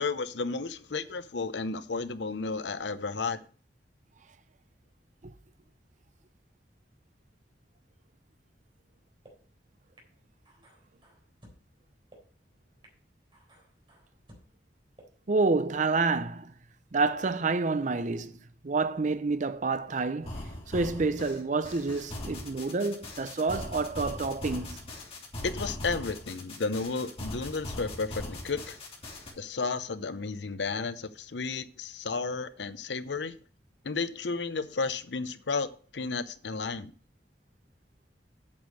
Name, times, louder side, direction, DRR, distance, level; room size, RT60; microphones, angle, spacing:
voice 1, 0.0-3.4 25.4-28.8 29.4-33.3 33.8-36.9, left 4 dB, 80° left, 0.7 m, -33 dB
sound 1, 8.6-8.7 9.2-9.3 10.0-10.1 10.5-11.6 12.1-12.2 12.8-12.9 13.3-14.5 15.0-15.1, right 1 dB, 30° right, 3.9 m, -56 dB
voice 2, 15.3-16.5 16.9-18.4 18.6-20.4 20.7-24.8, right 3 dB, 45° right, 0.6 m, -28 dB
sound 2, 20.2-29.3, left 1 dB, 35° left, 3.0 m, -40 dB
8.7 x 6.5 x 6.3 m
head